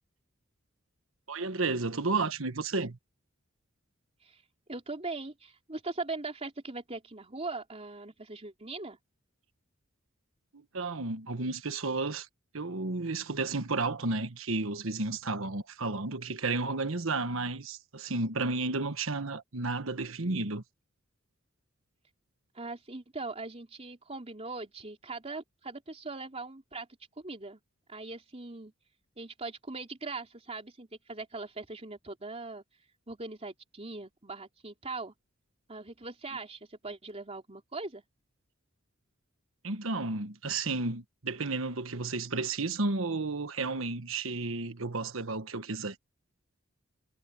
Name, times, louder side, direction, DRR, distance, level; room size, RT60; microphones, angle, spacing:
voice 1, 1.3-3.0 10.5-12.3 12.5-20.6 39.6-46.0, right 3 dB, 80° right, 1.4 m, -32 dB
voice 2, 4.7-9.0 22.5-26.9 27.2-27.6 27.9-28.7 29.2-32.6 33.1-35.1 35.7-38.0, right 3 dB, 30° right, 3.5 m, -40 dB
head